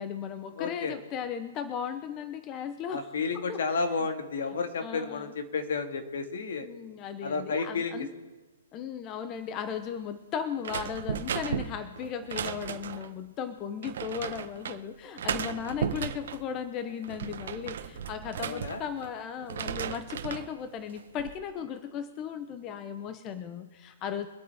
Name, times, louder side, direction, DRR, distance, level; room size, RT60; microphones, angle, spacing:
voice 1, 0.0-3.1 3.3-3.6 4.8-5.3 6.6-8.1 8.7-24.3, left 8 dB, 25° left, 9 dB, 0.8 m, -36 dB
voice 2, 0.6-1.0 2.9-6.7 7.2-8.1 18.4-18.8, left 4 dB, 65° left, 6 dB, 1.9 m, -31 dB
sound 1, 10.6-13.1 13.8-14.8 15.2-16.4 16.9-19.1 19.4-20.5 20.9-21.4, right 8 dB, 60° right, 1.0 m, -35 dB
24.5 x 8.7 x 3.5 m, 1.3 s
hypercardioid pair, 155°, 0 cm